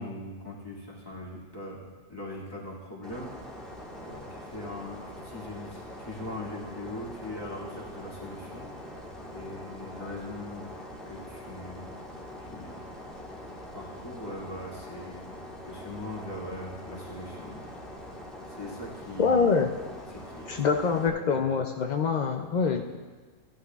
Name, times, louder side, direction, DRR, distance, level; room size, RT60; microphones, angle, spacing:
voice 1, 0.0-3.3 4.0-9.0 9.3-11.8 12.4-12.8 13.7-15.2 15.6-17.7 18.5-19.5 20.1-20.6 21.1-21.5, left 1 dB, 15° left, -5 dB, 2.1 m, -41 dB
sound 1, 3.0-21.1, left 1 dB, ahead, 1.4 m, -43 dB
voice 2, 19.2-19.7 20.5-22.8, left 5 dB, 60° left, 4 dB, 0.4 m, -25 dB
16.0 x 11.5 x 2.4 m, 1.4 s
omnidirectional pair, 1.4 m